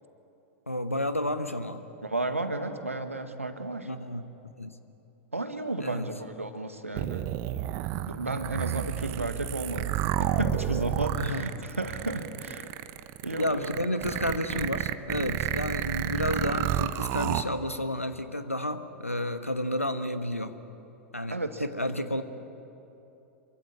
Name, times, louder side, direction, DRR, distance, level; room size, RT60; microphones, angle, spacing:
voice 1, 0.7-1.8 3.8-4.7 5.8-6.1 11.2-11.5 13.4-20.6 21.1-22.2, left 1 dB, 85° left, 10 dB, 1.3 m, -31 dB
voice 2, 2.0-3.9 5.3-7.3 8.1-9.9 10.2-12.7 13.2-13.7 21.3-21.6, right 2 dB, 85° right, 8 dB, 1.8 m, -33 dB
sound 1, 6.9-17.4, right 13 dB, 40° right, 1.0 m, -30 dB
27.0 x 23.5 x 8.6 m, 2.9 s
figure-of-eight pair, 95°, 7 cm